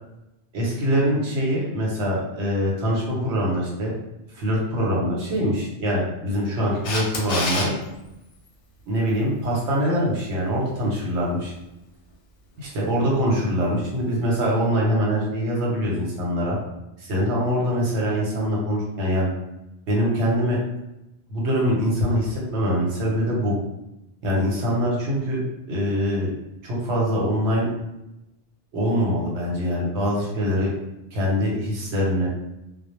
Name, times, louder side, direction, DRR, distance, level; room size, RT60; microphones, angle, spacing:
voice 1, 0.5-3.9 4.3-7.7 8.9-11.5 12.6-16.6 17.0-19.3 19.9-20.6 21.3-23.5 24.2-25.4 25.7-26.3 26.6-27.7 28.7-30.7 31.1-32.3, equal, 75° right, -3 dB, 1.0 m, -23 dB
Camera, 6.8-7.7 14.4-14.5, left 2 dB, 60° left, 0.7 m, -26 dB
2.1 x 2.1 x 3.0 m, 0.92 s
omnidirectional pair, 1.2 m